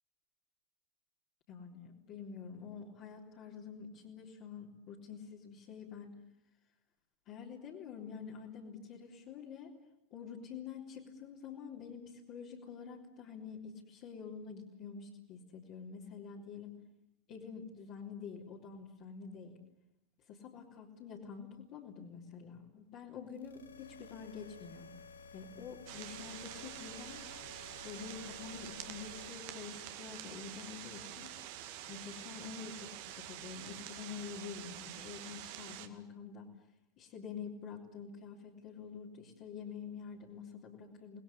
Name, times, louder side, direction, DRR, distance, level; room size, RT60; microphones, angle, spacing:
voice 1, 1.5-6.1 7.3-9.7 10.1-16.8 17.3-19.6 20.3-24.9 25.3-27.3 27.8-31.4 31.9-36.5 37.0-41.2, left 6 dB, 40° left, -4 dB, 3.7 m, -47 dB
sound 1, 23.3-29.3, left 4 dB, 70° left, 1.8 m, -54 dB
sound 2, 25.9-35.9, right 12 dB, 50° right, 2.3 m, -47 dB
28.5 x 20.5 x 9.8 m, 0.86 s
figure-of-eight pair, 90°, 0 cm